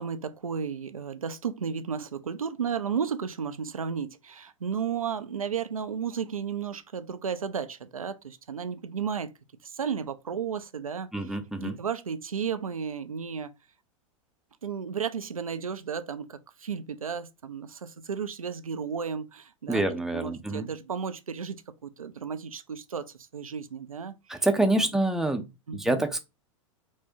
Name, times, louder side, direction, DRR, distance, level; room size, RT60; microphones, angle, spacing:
voice 1, 0.0-9.3 9.6-13.5 14.6-19.8 20.1-23.1 23.3-24.2 24.7-24.9 25.7-26.1, right 6 dB, 90° right, 0.4 m, -33 dB
voice 2, 11.1-11.7 19.7-20.7 24.3-25.4 25.7-26.2, right 2 dB, 5° right, 0.5 m, -26 dB
4.6 x 2.1 x 2.7 m
figure-of-eight pair, 95°, 17 cm